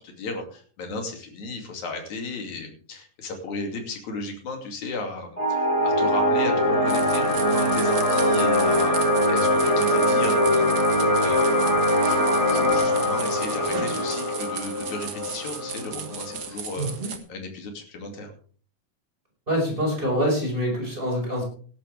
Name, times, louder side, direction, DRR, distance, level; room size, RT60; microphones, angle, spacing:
voice 1, 0.0-12.1 12.5-18.3, left 3 dB, 55° left, 3 dB, 3.9 m, -34 dB
sound 1, 5.4-16.4, left 1 dB, 20° left, 3.6 m, -22 dB
sound 2, 6.9-17.2, right 6 dB, 75° right, 0.9 m, -36 dB
voice 2, 16.8-17.1 19.5-21.4, equal, 15° right, -1 dB, 5.5 m, -25 dB
17.5 x 12.0 x 3.5 m, 0.43 s
omnidirectional pair, 4.0 m